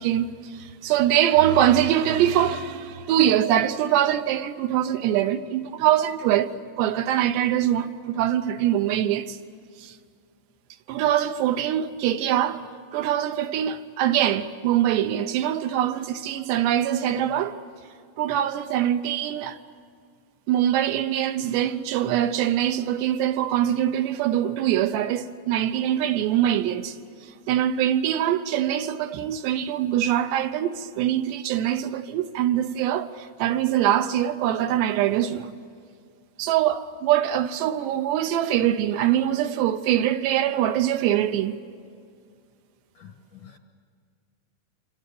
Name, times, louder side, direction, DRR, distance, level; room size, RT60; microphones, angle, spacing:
voice 1, 0.0-6.5 6.8-9.4 9.8-10.0 10.9-12.6 12.9-17.6 18.2-19.6 20.5-27.0 27.5-35.5 36.4-41.6, right 11 dB, 80° right, 2.9 m, -23 dB
voice 2, 43.0-43.6, left 8 dB, 65° left, 2.1 m, -48 dB
27.0 x 25.5 x 8.5 m
omnidirectional pair, 5.2 m